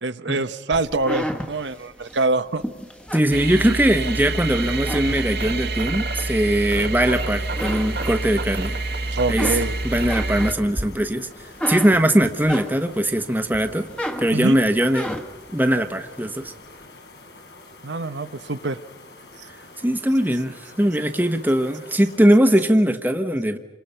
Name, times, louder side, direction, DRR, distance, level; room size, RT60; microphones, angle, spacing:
voice 1, 0.0-2.6 9.1-9.8 14.3-14.6 17.8-18.8, right 3 dB, 85° right, 11 dB, 0.9 m, -24 dB
sound 1, 0.7-4.1 4.6-5.7 6.2-7.2 7.5-8.7 9.1-13.1 13.5-15.5, equal, 5° left, 1.4 m, -32 dB
voice 2, 3.1-8.8 9.3-9.5 9.8-11.3 11.7-13.8 14.2-15.2 15.5-16.5 19.8-23.6, right 1 dB, 10° right, 7 dB, 1.1 m, -20 dB
sound 2, 3.3-10.5, right 2 dB, 65° right, 1.5 m, -27 dB
sound 3, 7.3-22.2, left 2 dB, 75° left, 4.1 m, -46 dB
28.0 x 26.5 x 5.7 m, 1.2 s
head